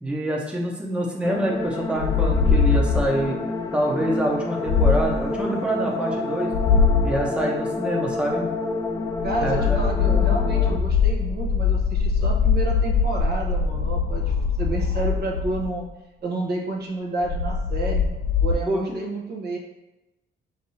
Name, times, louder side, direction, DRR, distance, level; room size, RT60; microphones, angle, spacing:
voice 1, 0.0-3.4 3.7-6.5 7.0-8.4 9.4-9.8 18.7-19.0, right 1 dB, 5° right, -2 dB, 0.9 m, -26 dB
sound 1, 1.2-10.8, left 3 dB, 15° left, 0.5 m, -29 dB
sound 2, 2.0-3.2 4.7-5.3 6.5-7.2 9.1-15.9 17.2-18.6, left 5 dB, 70° left, 0.5 m, -22 dB
voice 2, 9.2-15.8 16.2-18.1 18.4-19.6, right 2 dB, 55° right, 0 dB, 1.0 m, -30 dB
5.3 x 2.0 x 4.1 m, 0.98 s
cardioid pair, 90°, 20 cm